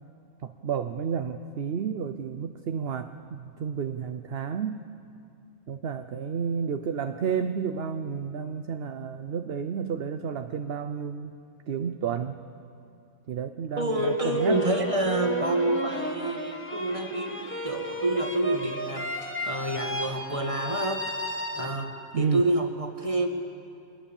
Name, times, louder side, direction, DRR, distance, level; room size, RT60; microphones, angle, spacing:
voice 1, 0.4-4.9 5.7-11.3 11.7-12.4 13.3-14.6 22.1-22.4, right 7 dB, 55° right, 8 dB, 0.8 m, -31 dB
voice 2, 13.8-21.9 22.1-23.3, right 1 dB, 25° right, 3 dB, 1.9 m, -28 dB
sound 1, 13.9-22.1, equal, 10° left, 1.4 m, -34 dB
24.5 x 20.0 x 7.2 m, 2.6 s
omnidirectional pair, 1.5 m